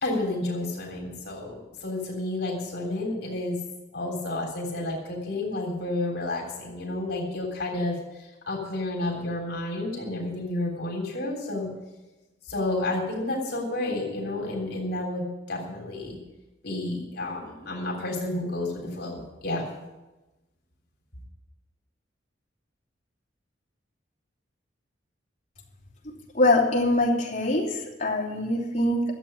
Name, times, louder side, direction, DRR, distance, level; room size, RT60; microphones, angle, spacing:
voice 1, 0.0-3.6 3.9-11.7 12.5-16.2 16.6-19.6, left 2 dB, 60° left, -1 dB, 3.4 m, -31 dB
voice 2, 26.3-29.2, left 2 dB, 35° left, -4 dB, 2.9 m, -23 dB
13.0 x 7.9 x 8.7 m, 1.1 s
head